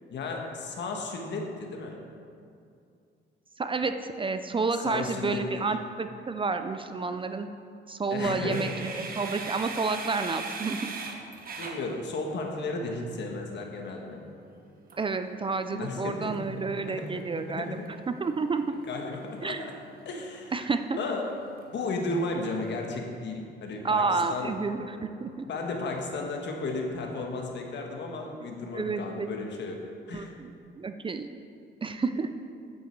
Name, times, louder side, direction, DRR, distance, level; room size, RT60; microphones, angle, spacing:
voice 1, 0.1-2.0 4.8-5.6 8.1-8.9 11.6-14.2 15.7-17.8 18.9-19.7 20.0-20.6 21.0-21.3 21.7-24.5 25.5-29.8 30.1-30.3, left 3 dB, 65° left, 2 dB, 1.5 m, -34 dB
voice 2, 3.6-7.5 7.9-10.9 15.0-17.7 18.1-18.7 19.4-19.6 20.5-21.0 23.8-25.5 28.3-28.5 28.7-29.3 30.1-30.5 30.8-31.3 31.8-32.3, right 4 dB, 25° right, 9 dB, 0.5 m, -30 dB
sound 1, 8.5-12.6 14.9-22.9, right 4 dB, 45° right, 1.1 m, -43 dB
8.8 x 8.2 x 4.6 m, 2.4 s
cardioid pair, 90°, 20 cm